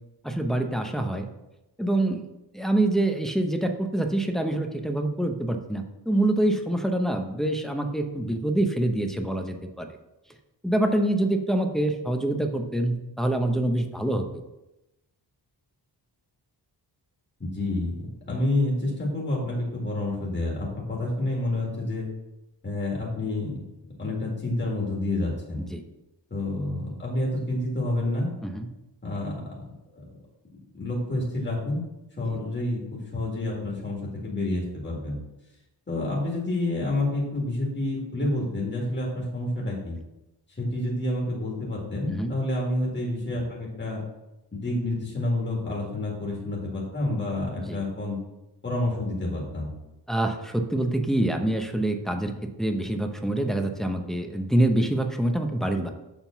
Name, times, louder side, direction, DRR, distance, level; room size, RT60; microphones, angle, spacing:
voice 1, 0.2-1.3 1.8-2.2 2.5-9.9 10.6-14.2 25.6-25.8 28.4-28.7 32.2-32.4 42.1-42.3 47.7-47.8 50.1-52.3 52.6-55.9, right 1 dB, ahead, 4 dB, 0.7 m, -25 dB
voice 2, 17.4-22.1 22.6-23.6 24.0-25.6 26.3-28.3 29.0-29.4 29.9-30.0 30.7-31.8 32.2-35.2 35.9-40.0 40.6-44.0 44.5-48.2 48.6-49.7, left 2 dB, 25° left, -4 dB, 2.0 m, -28 dB
7.2 x 3.7 x 5.7 m, 0.95 s
wide cardioid pair, 100°, 43 cm